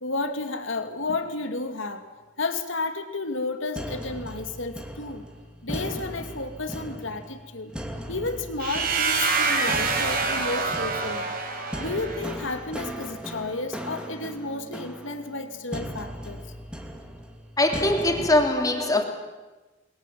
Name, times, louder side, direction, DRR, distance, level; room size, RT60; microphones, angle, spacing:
voice 1, 0.0-2.1 2.4-5.2 5.6-7.7 8.1-11.3 11.8-16.4, left 3 dB, 80° left, 2.5 m, -32 dB
sound 1, 3.8-18.5, equal, 5° right, 2.5 m, -38 dB
sound 2, 8.6-12.4, right 4 dB, 50° right, 4.2 m, -26 dB
voice 2, 17.6-19.0, left 1 dB, 20° left, 3.0 m, -22 dB
29.0 x 22.0 x 7.6 m
head